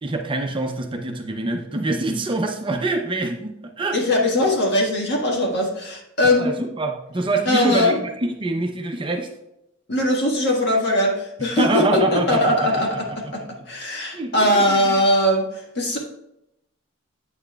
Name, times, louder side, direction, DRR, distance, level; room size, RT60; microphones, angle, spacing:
voice 1, 0.0-4.0 6.4-9.3 11.6-12.7 14.1-15.0, right 2 dB, 25° right, 3 dB, 0.6 m, -25 dB
voice 2, 3.9-6.5 7.4-8.0 9.9-13.4 13.7-15.4 15.7-16.0, left 1 dB, 55° left, 0 dB, 1.6 m, -20 dB
8.8 x 7.0 x 2.3 m, 0.84 s
head